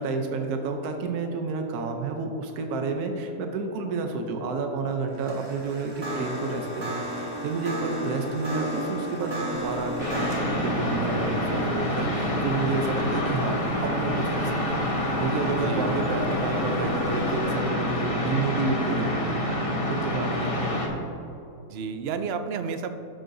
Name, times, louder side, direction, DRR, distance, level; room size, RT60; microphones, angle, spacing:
voice 1, 0.0-14.9 15.2-19.3 19.9-20.9, right 3 dB, 80° right, 4 dB, 1.2 m, -30 dB
sound 1, 5.1-14.4, right 1 dB, 20° right, 1.2 m, -35 dB
sound 2, 9.5-17.4, left 2 dB, 65° left, 1.9 m, -38 dB
sound 3, 10.0-20.9, left 1 dB, 25° left, 1.1 m, -27 dB
voice 2, 15.6-16.0 16.7-17.2 21.7-22.9, right 6 dB, 65° right, 9 dB, 0.6 m, -32 dB
11.5 x 7.9 x 2.6 m, 3.0 s
omnidirectional pair, 1.6 m